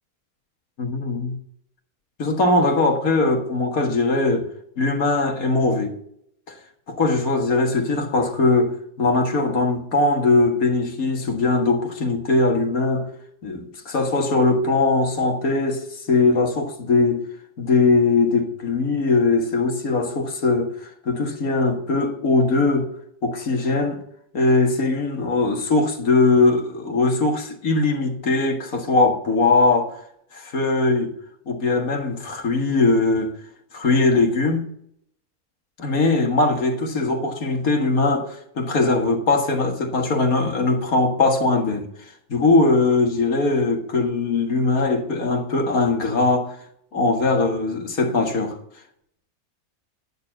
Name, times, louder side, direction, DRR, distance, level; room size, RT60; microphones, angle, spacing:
voice 1, 0.8-1.4 2.2-4.5 4.8-5.9 6.9-13.1 13.4-17.2 17.6-22.9 23.2-24.0 24.3-30.0 30.3-31.1 31.5-33.3 33.7-34.7 35.8-41.9 42.3-46.6 46.9-48.6, left 3 dB, 65° left, 2.0 m, -20 dB
10.5 x 6.7 x 5.9 m
omnidirectional pair, 1.6 m